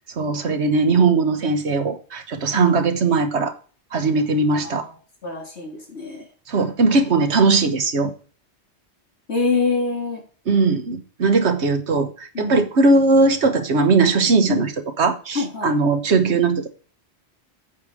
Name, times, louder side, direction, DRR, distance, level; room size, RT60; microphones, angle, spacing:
voice 1, 0.2-3.5 3.9-4.9 6.5-8.1 10.5-12.1 12.4-14.7 15.0-16.7, right 3 dB, 75° right, 1.5 m, -19 dB
voice 2, 5.2-6.2 9.3-10.2 12.3-12.6 14.5-14.6 15.3-15.7, left 4 dB, 75° left, 3.5 m, -25 dB
8.9 x 4.5 x 6.4 m
omnidirectional pair, 1.1 m